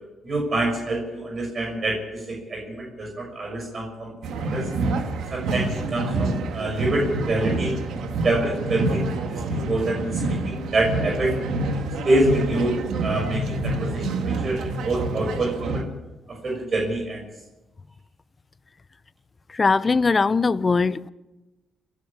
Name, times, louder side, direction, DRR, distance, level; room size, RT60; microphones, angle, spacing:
voice 1, 0.2-2.2 2.5-4.1 4.4-4.7 5.3-7.8 8.2-10.2 10.4-11.4 12.0-15.9 16.3-17.2, right 2 dB, 40° right, 6.2 m, -26 dB
sound 1, 4.2-15.8, right 2 dB, 90° right, 2.3 m, -27 dB
voice 2, 19.5-21.1, left 4 dB, 30° left, 0.7 m, -20 dB
29.5 x 11.5 x 8.8 m
cardioid pair, 125°, 0 cm